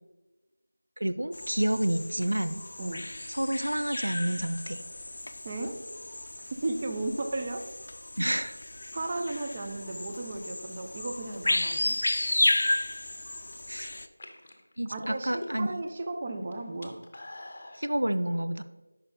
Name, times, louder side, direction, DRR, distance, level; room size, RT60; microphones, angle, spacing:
voice 1, 1.0-2.6 3.3-4.8 8.2-8.6 13.7-13.9 14.8-15.8 17.8-18.6, right 1 dB, 85° right, 10 dB, 0.4 m, -29 dB
sound 1, 1.3-14.1, left 2 dB, 50° left, 0.4 m, -33 dB
voice 2, 5.4-5.8 6.5-7.6 8.9-12.0 14.9-17.0, right 2 dB, 25° right, 4 dB, 0.4 m, -34 dB
sound 2, 13.0-13.5 14.1-15.9 16.2-17.9, left 1 dB, 30° left, 0.8 m, -45 dB
5.9 x 5.4 x 3.8 m, 1.1 s
figure-of-eight pair, 175°, 0 cm